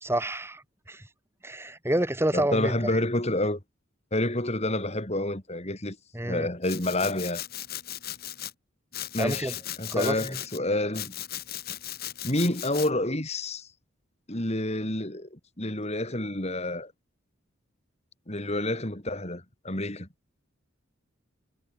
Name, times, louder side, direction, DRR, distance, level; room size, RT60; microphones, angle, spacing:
voice 1, 0.0-0.6 0.9-1.0 1.4-3.0 6.1-6.5 9.2-9.5 9.9-10.1, right 1 dB, 10° right, 2.3 m, -28 dB
voice 2, 2.3-3.6 4.1-6.0 6.2-7.4 9.1-11.2 12.2-13.7 14.3-16.9 18.3-20.1, left 1 dB, 30° left, 3.6 m, -29 dB
Domestic sounds home sounds, 6.6-8.5 8.9-10.6 10.9-12.9, left 12 dB, 50° left, 4.0 m, -37 dB
head